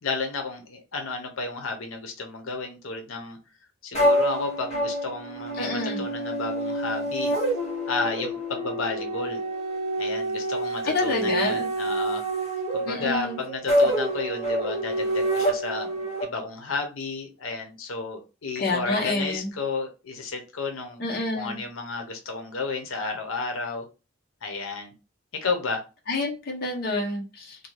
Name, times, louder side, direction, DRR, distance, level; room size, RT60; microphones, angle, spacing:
voice 1, 0.0-3.4 3.8-7.3 7.9-9.4 10.0-12.2 12.7-21.0 21.3-23.8 24.4-24.9 25.3-25.8, left 3 dB, 80° left, 4 dB, 0.7 m, -32 dB
sound 1, 3.9-16.2, right 1 dB, 35° left, 1.0 m, -27 dB
voice 2, 5.6-6.0 10.8-11.7 12.9-13.4 18.6-19.5 21.0-21.6 26.1-27.6, left 2 dB, 50° left, 0 dB, 0.6 m, -28 dB
2.7 x 2.2 x 3.1 m, 0.30 s
head